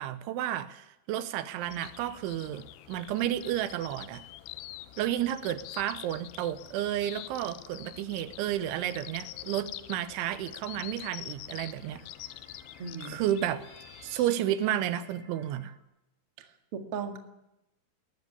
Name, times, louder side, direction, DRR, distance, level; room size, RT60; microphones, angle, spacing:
voice 1, 0.0-4.2 5.0-12.0 13.0-13.6 14.0-15.7, right 12 dB, 80° right, 13 dB, 3.2 m, -32 dB
sound 1, 1.6-14.3, left 14 dB, 75° left, 2.5 m, -46 dB
sound 2, 11.1-15.8, right 1 dB, 20° right, 6.5 m, -58 dB
voice 2, 12.8-13.2 16.4-17.2, right 6 dB, 50° right, 5 dB, 1.8 m, -37 dB
19.5 x 15.0 x 9.7 m, 0.90 s
omnidirectional pair, 5.6 m